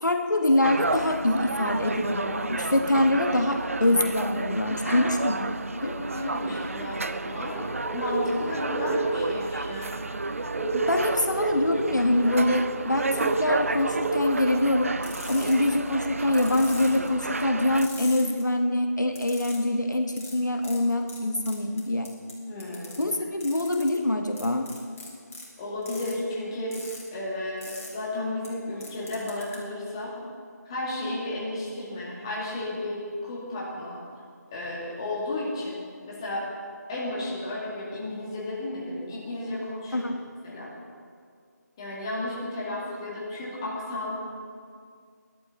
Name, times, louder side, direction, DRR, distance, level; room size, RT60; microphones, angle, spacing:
voice 1, 0.0-5.5 5.8-6.0 10.7-14.9 15.3-22.1 23.0-24.7 39.9-40.2, left 1 dB, 80° left, 5 dB, 1.3 m, -24 dB
sound 1, 0.6-17.9, right 3 dB, 50° right, 0.5 m, -32 dB
voice 2, 4.8-5.2 5.8-10.1 22.5-23.0 25.6-26.8 27.1-30.1 30.6-34.0 34.5-35.8 36.1-36.4 36.9-40.0 40.4-40.7 41.8-44.1, left 1 dB, 15° left, -6 dB, 2.2 m, -33 dB
sound 2, 7.5-14.2, right 2 dB, 5° right, 0.6 m, -31 dB
sound 3, 15.0-15.7 16.3-17.1 17.8-18.4 19.1-19.6 20.2-20.3 20.6-20.8 21.1-21.2 21.4-22.3 22.6-23.0 23.4-23.9 24.3-25.4 25.8-26.1 26.7-27.0 27.6-27.9 28.4-28.5 28.8-29.6, left 2 dB, 50° left, 4.3 m, -41 dB
18.5 x 12.0 x 3.9 m, 2.2 s
figure-of-eight pair, 165°, 10 cm